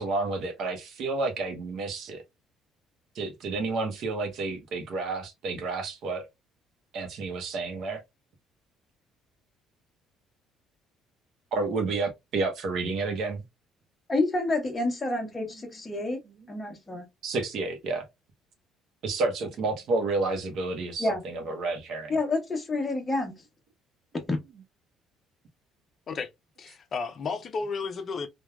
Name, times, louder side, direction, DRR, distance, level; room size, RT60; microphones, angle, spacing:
voice 1, 0.0-2.2 3.1-6.3 6.9-8.0 11.5-13.4 17.2-18.0 19.0-22.2, right 3 dB, 60° right, 0.7 m, -30 dB
voice 2, 14.1-16.2 16.5-17.1 21.0-21.2 22.1-23.3 24.3-24.4, left 2 dB, 15° left, 0.8 m, -28 dB
voice 3, 26.6-28.3, left 4 dB, 35° left, 0.4 m, -33 dB
3.1 x 2.2 x 2.2 m
cardioid pair, 140°, 0 cm